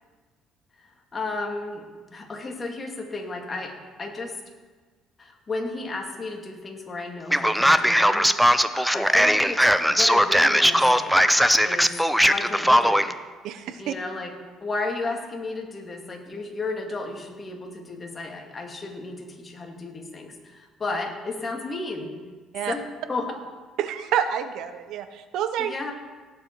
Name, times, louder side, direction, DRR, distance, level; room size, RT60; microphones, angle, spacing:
voice 1, 0.8-4.4 5.2-11.3 11.6-13.1 13.8-14.3 14.6-22.1 22.7-22.8 23.1-23.3 25.6-25.9, left 3 dB, 25° left, 1 dB, 2.2 m, -33 dB
Male speech man speaking, 7.3-13.1, equal, ahead, 0.5 m, -19 dB
voice 2, 13.4-13.9 22.5-22.7 23.8-25.7, right 9 dB, 70° right, 10 dB, 0.8 m, -28 dB
17.5 x 7.5 x 4.5 m, 1.4 s
cardioid pair, 115°, 0 cm